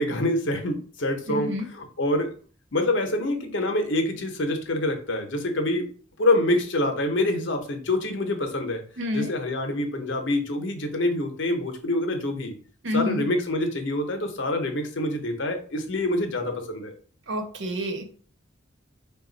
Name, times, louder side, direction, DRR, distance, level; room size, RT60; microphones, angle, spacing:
voice 1, 0.0-2.3 2.7-5.9 6.2-8.8 9.1-12.5 12.9-16.9, left 1 dB, 65° left, 4 dB, 0.8 m, -26 dB
voice 2, 1.3-1.6 9.0-9.3 12.8-13.3 17.3-18.1, left 1 dB, 65° right, 4 dB, 0.7 m, -28 dB
4.0 x 2.3 x 3.9 m, 0.42 s
head